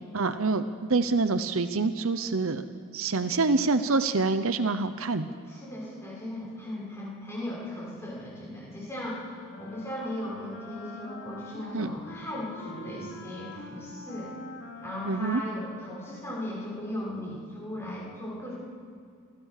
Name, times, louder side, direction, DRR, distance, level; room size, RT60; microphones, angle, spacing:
voice 1, 0.1-2.6 2.9-5.3 11.7-11.9 15.1-15.4, right 3 dB, 65° right, 11 dB, 0.8 m, -26 dB
voice 2, 5.5-9.3 9.6-14.3 14.8-18.5, left 1 dB, 10° left, -5 dB, 6.1 m, -37 dB
Wind instrument woodwind instrument, 8.9-17.1, left 1 dB, 60° left, 2.7 m, -45 dB
28.0 x 15.5 x 6.7 m, 2.3 s
head